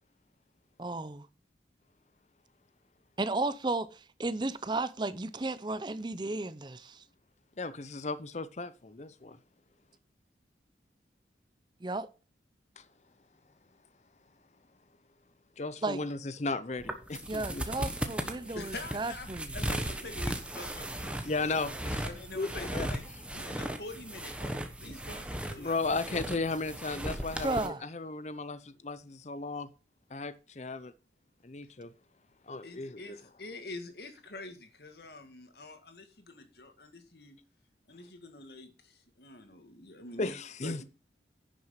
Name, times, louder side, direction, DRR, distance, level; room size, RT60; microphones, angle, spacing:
voice 1, 0.8-1.3 3.2-7.0 11.8-12.1 15.8-16.0 17.3-19.5 27.4-27.9, right 2 dB, 25° right, 0.5 m, -34 dB
voice 2, 7.6-9.4 15.6-17.6 21.2-22.1 22.4-22.9 25.6-29.7 30.1-30.9 31.4-31.9 32.5-33.2 40.2-40.8, left 3 dB, 40° left, 0.6 m, -35 dB
sound 1, 16.8-27.7, right 1 dB, 5° right, 1.1 m, -37 dB
voice 3, 18.5-19.3 19.5-21.6 22.0-25.8 32.6-37.4 37.9-40.8, left 2 dB, 60° left, 1.8 m, -46 dB
10.5 x 6.3 x 5.7 m
head